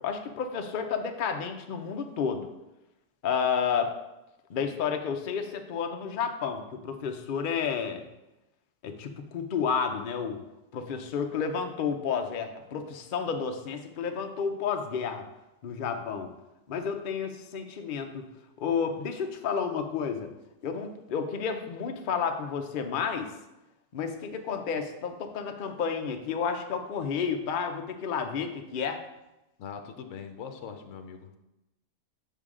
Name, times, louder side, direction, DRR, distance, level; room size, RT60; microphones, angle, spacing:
voice 1, 0.0-2.5 3.2-3.9 4.5-8.0 8.8-10.4 10.7-15.2 15.6-16.3 16.7-18.3 18.6-20.3 20.6-23.3 23.9-29.0, left 6 dB, 85° left, 5 dB, 0.4 m, -31 dB
voice 2, 29.6-31.4, left 6 dB, 65° left, 6 dB, 0.8 m, -41 dB
6.7 x 5.6 x 3.7 m, 0.95 s
omnidirectional pair, 1.7 m